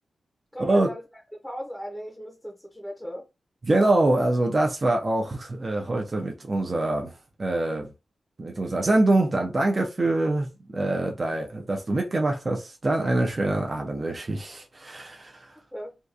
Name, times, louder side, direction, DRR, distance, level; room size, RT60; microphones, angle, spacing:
voice 1, 0.5-1.0 1.3-3.2 15.7-16.0, equal, ahead, 0.6 m, -37 dB
voice 2, 3.6-7.1 7.4-7.9 8.4-15.5, right 2 dB, 40° right, 0.5 m, -24 dB
2.7 x 2.3 x 2.4 m
cardioid pair, 80°, 0 cm